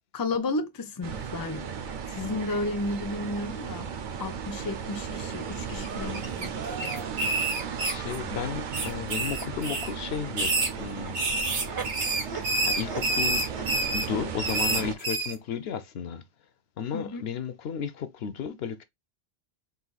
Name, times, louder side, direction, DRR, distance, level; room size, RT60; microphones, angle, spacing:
voice 1, 0.1-1.7 2.1-3.9 4.2-7.3 16.9-17.2, left 2 dB, 25° left, 0.5 m, -33 dB
sound 1, 1.0-14.9, right 6 dB, 55° right, 0.7 m, -36 dB
sound 2, 5.7-6.5 6.8-8.4 8.7-9.9 10.3-15.3, right 2 dB, 85° right, 1.5 m, -28 dB
voice 2, 7.8-11.2 12.3-13.4 13.9-16.2 16.8-18.8, left 7 dB, 70° left, 0.8 m, -34 dB
4.0 x 2.5 x 4.0 m
omnidirectional pair, 1.1 m